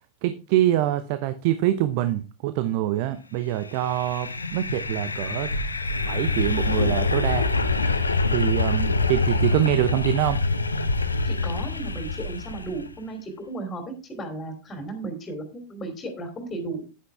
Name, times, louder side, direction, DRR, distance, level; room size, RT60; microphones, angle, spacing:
voice 1, 0.2-5.5 6.0-7.5 8.3-10.4, right 13 dB, 45° right, 12 dB, 0.8 m, -25 dB
sound 1, 3.7-12.9, left 3 dB, 80° left, 1.0 m, -25 dB
voice 2, 11.2-16.8, right 2 dB, 20° left, 4 dB, 2.9 m, -35 dB
10.5 x 9.6 x 3.4 m, 0.32 s
figure-of-eight pair, 90°, 0 cm